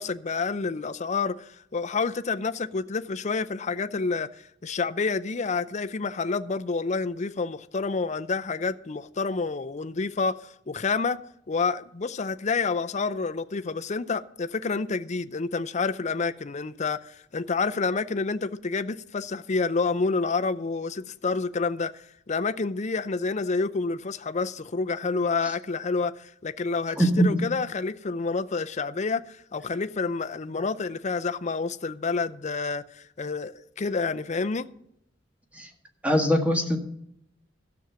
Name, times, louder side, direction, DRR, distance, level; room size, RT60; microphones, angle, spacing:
voice 1, 0.0-11.2 11.5-34.7, left 4 dB, 40° left, 0.6 m, -29 dB
voice 2, 27.0-27.3 35.5-35.7 36.0-36.8, equal, 10° right, 1.8 m, -22 dB
13.0 x 7.1 x 7.3 m
head